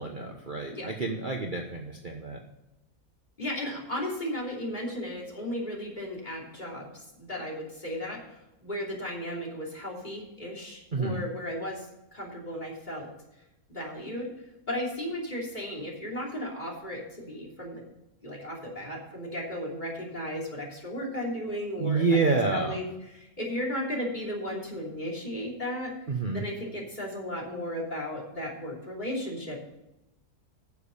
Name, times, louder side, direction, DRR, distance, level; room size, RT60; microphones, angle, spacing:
voice 1, 0.0-2.4 10.9-11.2 21.8-22.8 26.1-26.4, right 4 dB, 35° right, 1 dB, 1.1 m, -28 dB
voice 2, 3.4-11.9 12.1-13.1 13.7-14.3 14.7-17.8 18.2-25.9 26.3-29.6, left 1 dB, 30° left, -1 dB, 3.2 m, -35 dB
9.7 x 7.0 x 6.9 m, 0.93 s
omnidirectional pair, 1.7 m